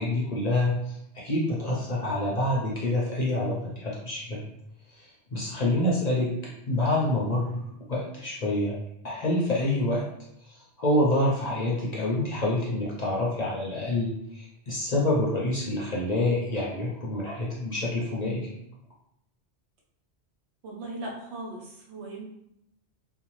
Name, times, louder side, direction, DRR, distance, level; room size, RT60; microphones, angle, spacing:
voice 1, 0.0-4.4 4.9-6.3 6.7-8.7 9.0-10.0 10.5-18.6, left 1 dB, 50° left, -5 dB, 0.5 m, -27 dB
voice 2, 20.6-22.3, right 2 dB, 80° right, -2 dB, 1.0 m, -38 dB
2.6 x 2.0 x 3.0 m, 0.79 s
omnidirectional pair, 1.1 m